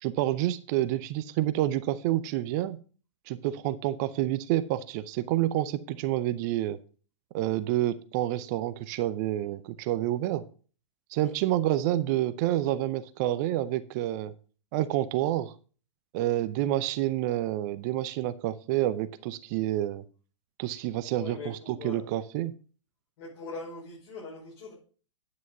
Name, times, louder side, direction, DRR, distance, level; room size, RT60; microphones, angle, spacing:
voice 1, 0.0-2.8 3.3-6.8 7.3-10.5 11.1-14.3 14.7-15.5 16.1-20.0 20.6-22.5, right 14 dB, 35° right, 14 dB, 0.6 m, -28 dB
voice 2, 21.2-22.0 23.2-24.7, left 3 dB, 45° left, -6 dB, 5.4 m, -41 dB
9.6 x 6.2 x 5.4 m, 0.39 s
figure-of-eight pair, 115°, 16 cm